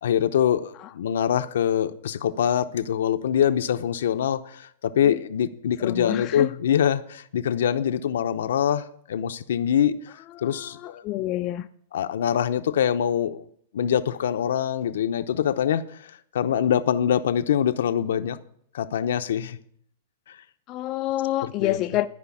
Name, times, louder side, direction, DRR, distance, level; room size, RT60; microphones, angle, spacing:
voice 1, 0.0-9.9 10.4-11.0 11.9-13.4 13.7-15.8 16.3-18.4 18.7-19.6 21.6-21.8, left 9 dB, 80° left, 0.8 m, -24 dB
voice 2, 5.8-6.6 10.3-11.7 20.7-22.1, left 15 dB, 35° left, 0.5 m, -28 dB
13.0 x 5.2 x 8.4 m
hypercardioid pair, 140°, 0 cm